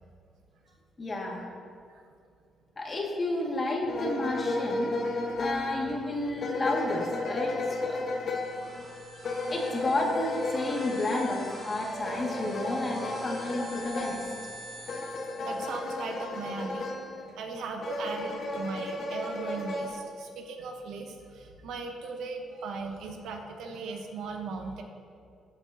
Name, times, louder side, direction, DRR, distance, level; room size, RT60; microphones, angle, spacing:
voice 1, 1.0-1.5 2.8-5.0 5.4-8.1 9.5-14.3, left 2 dB, 30° left, -1 dB, 2.1 m, -31 dB
sound 1, 3.9-17.3 17.8-19.9, left 2 dB, 55° left, 1.5 m, -34 dB
sound 2, 8.2-15.9, right 2 dB, 35° right, 3.1 m, -42 dB
voice 2, 8.5-9.1 15.4-16.9 17.1-24.8, right 4 dB, 80° right, 2 dB, 1.1 m, -38 dB
23.0 x 7.8 x 2.9 m, 2.3 s
cardioid pair, 90°, 0 cm